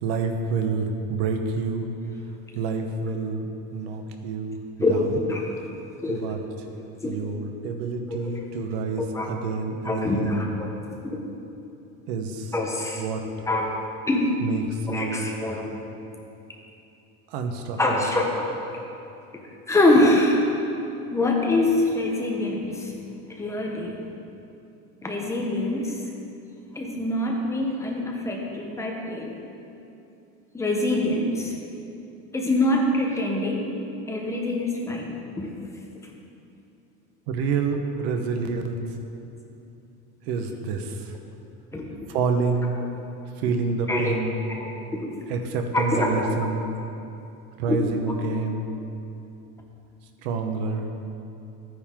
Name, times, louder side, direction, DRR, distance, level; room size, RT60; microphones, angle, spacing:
voice 1, 0.0-1.9 2.5-4.6 4.9-5.2 6.1-6.4 7.0-10.5 12.1-12.5 13.0-13.2 14.4-15.3 17.3-18.1 37.3-38.9 40.2-41.2 42.1-42.8 43.4-44.4 45.3-46.7 47.6-48.7 50.2-50.9, right 4 dB, 85° right, 5 dB, 1.2 m, -28 dB
voice 2, 4.8-5.4 6.0-6.2 7.0-7.2 8.1-8.4 9.0-9.3 9.8-10.7 11.1-11.2 12.5-13.0 13.4-13.7 14.1-14.3 14.9-15.8 17.8-18.6 19.7-20.4 21.1-22.9 23.3-24.0 25.0-26.0 26.7-29.4 30.5-31.5 32.3-33.7 34.1-35.5 41.7-41.9 43.9-44.1 44.5-45.1 45.7-46.2 47.7-47.8, left 2 dB, 10° left, 0 dB, 0.9 m, -24 dB
13.5 x 9.5 x 3.7 m, 2.8 s
cardioid pair, 170°, 30 cm